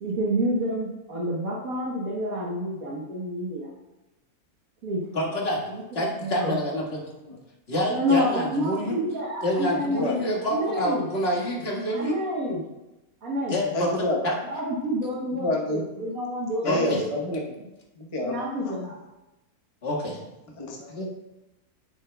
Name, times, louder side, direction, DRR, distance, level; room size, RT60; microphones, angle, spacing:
voice 1, 0.0-3.7 4.8-5.0 6.2-6.6 7.9-11.1 11.9-12.7 13.2-13.6 14.5-17.1 18.2-19.0, equal, 65° right, -4 dB, 1.6 m, -28 dB
voice 2, 5.1-5.6 5.9-7.0 7.7-9.0 9.4-12.1 13.5-14.4 16.6-17.0 19.8-20.2, equal, 40° left, -3 dB, 1.9 m, -27 dB
voice 3, 13.7-14.2 15.4-15.8 16.6-17.6 18.0-18.8 20.6-21.1, left 1 dB, 25° left, -2 dB, 0.9 m, -28 dB
9.5 x 8.1 x 2.3 m, 0.99 s
omnidirectional pair, 1.6 m